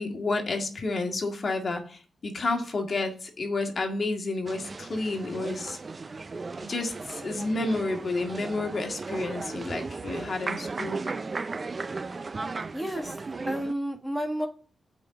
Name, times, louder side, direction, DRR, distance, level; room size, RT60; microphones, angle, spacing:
voice 1, 0.0-5.8 6.6-11.0, left 3 dB, 45° left, 3 dB, 2.0 m, -30 dB
sound 1, 4.5-13.7, right 3 dB, 35° right, 0.5 m, -36 dB
voice 2, 12.7-13.2 13.4-14.5, equal, 5° right, 3 dB, 1.6 m, -31 dB
8.6 x 5.3 x 6.7 m, 0.40 s
cardioid pair, 95°, 0 cm